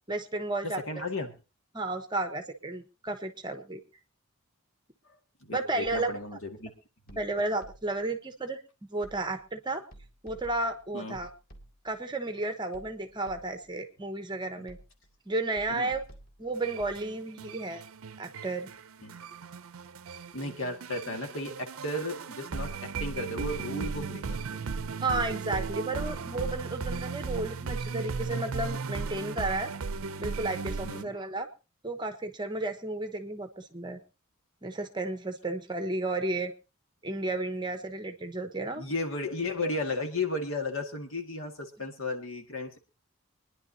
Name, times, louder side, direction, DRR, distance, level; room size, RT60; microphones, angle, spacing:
voice 1, 0.1-0.8 1.7-3.8 5.5-6.1 7.2-8.6 8.9-9.8 10.2-11.3 11.8-14.8 15.3-16.0 16.4-17.8 18.2-18.7 25.0-29.7 30.2-31.5 31.8-34.0 34.6-36.5 37.0-38.8, right 2 dB, 20° right, 7 dB, 1.0 m, -32 dB
voice 2, 0.6-1.3 5.1-6.7 7.1-7.2 10.9-11.2 15.7-15.9 19.0-19.2 20.3-24.7 30.8-31.1 38.8-42.8, left 2 dB, 65° left, 4 dB, 1.9 m, -35 dB
sound 1, 5.9-6.4 7.1-8.1 9.0-9.5 9.9-12.0 12.7-13.8 14.7-15.2 15.6-17.1, right 1 dB, 40° left, 2.1 m, -53 dB
sound 2, 16.6-31.0, right 4 dB, 75° right, 0.6 m, -36 dB
25.0 x 10.5 x 2.8 m, 0.30 s
head